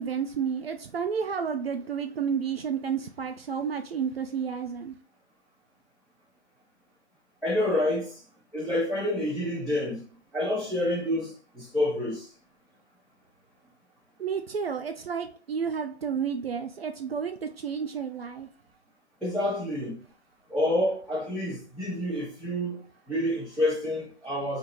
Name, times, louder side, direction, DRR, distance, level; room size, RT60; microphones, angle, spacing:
voice 1, 0.0-5.0 14.2-18.5, right 7 dB, 60° right, 0.5 m, -31 dB
voice 2, 7.4-8.2 8.5-10.0 10.3-12.3 19.2-20.0 20.5-22.8 23.1-24.6, left 1 dB, ahead, 1.3 m, -28 dB
3.5 x 2.8 x 2.9 m
hypercardioid pair, 165°, 34 cm